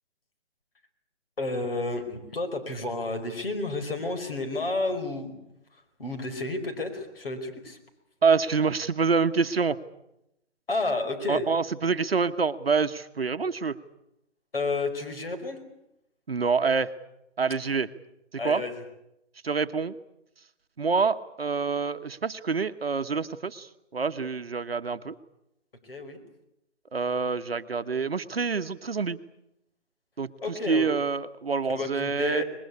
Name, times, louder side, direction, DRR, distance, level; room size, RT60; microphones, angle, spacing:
voice 1, 1.4-5.4 5.7-7.8 10.7-11.4 14.5-15.6 18.4-18.8 25.8-26.2 30.4-30.9 31.7-32.4, left 3 dB, 50° left, 7 dB, 5.1 m, -31 dB
voice 2, 8.2-9.8 11.3-13.8 16.3-16.9 17.4-17.9 18.4-18.6 19.4-20.0 20.8-25.2 26.9-29.2 30.2-30.3 30.7-32.4, right 5 dB, 55° right, 10 dB, 1.2 m, -26 dB
24.0 x 21.0 x 8.4 m, 0.83 s
hypercardioid pair, 180°, 36 cm